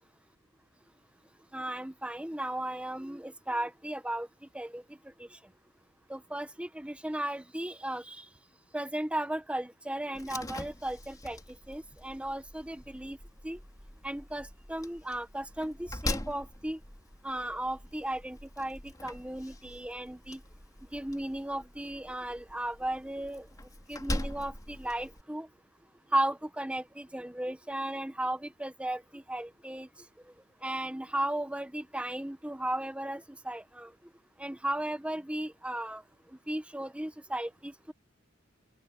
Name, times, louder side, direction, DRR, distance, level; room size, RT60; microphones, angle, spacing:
voice 1, 1.5-4.3 4.5-4.8 6.1-8.2 8.7-11.4 11.7-13.2 13.4-13.6 14.0-16.8 17.2-20.4 20.9-23.5 23.9-25.5 26.1-29.9 30.6-33.9 34.4-36.0 36.5-37.9, right 1 dB, 5° right, 1.0 m, -35 dB
Slam, 10.1-25.2, left 1 dB, 20° left, 3.3 m, -42 dB
head